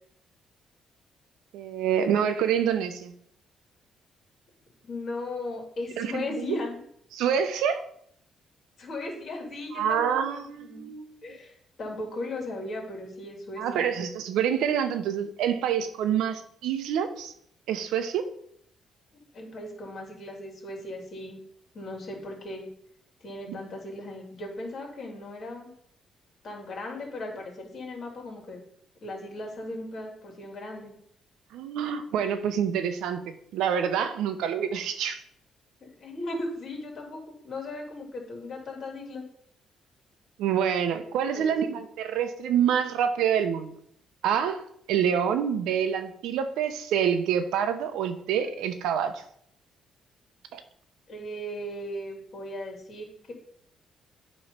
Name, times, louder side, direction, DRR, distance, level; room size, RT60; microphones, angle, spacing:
voice 1, 1.5-3.1 6.0-6.2 7.1-7.8 9.7-11.1 13.6-17.3 17.7-18.3 23.5-23.6 31.5-35.2 40.4-43.7 44.2-44.6 44.9-49.2 50.5-50.6, right 8 dB, 90° right, 9 dB, 0.7 m, -27 dB
voice 2, 4.8-6.8 8.8-10.8 11.2-13.9 19.1-21.4 21.7-22.7 23.2-25.7 26.4-28.6 29.0-30.9 35.8-39.2 41.3-41.7 51.1-53.3, left 2 dB, 55° left, 0 dB, 2.5 m, -37 dB
8.8 x 3.1 x 5.4 m, 0.68 s
cardioid pair, 90°, 0 cm